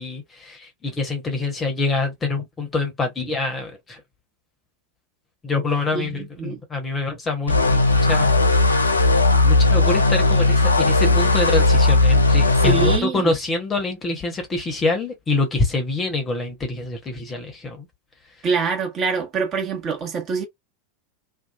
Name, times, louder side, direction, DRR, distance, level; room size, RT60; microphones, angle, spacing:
voice 1, 0.0-4.0 5.4-8.4 9.4-17.9, left 3 dB, 20° left, 0.9 m, -26 dB
voice 2, 5.9-6.6 12.6-13.3 18.4-20.5, right 5 dB, 30° right, 1.0 m, -25 dB
sound 1, 7.5-13.0, left 2 dB, 80° left, 0.5 m, -17 dB
2.6 x 2.3 x 2.3 m
figure-of-eight pair, 85°, 0 cm